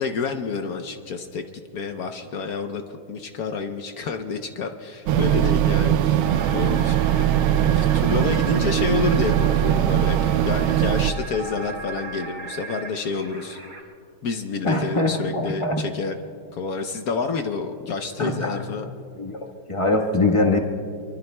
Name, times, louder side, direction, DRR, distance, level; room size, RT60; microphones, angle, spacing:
voice 1, 0.0-1.4 1.7-6.2 6.5-7.3 7.7-13.6 14.2-16.1 16.5-18.9, left 5 dB, 60° left, 6 dB, 1.0 m, -29 dB
sound 1, 5.1-11.1, right 11 dB, 90° right, 1.4 m, -20 dB
sound 2, 6.2-13.8, right 4 dB, 40° right, 3.1 m, -36 dB
voice 2, 14.6-15.8 18.2-18.5 19.1-20.6, left 2 dB, 20° left, 1 dB, 1.0 m, -23 dB
24.0 x 24.0 x 2.2 m, 2.4 s
omnidirectional pair, 2.2 m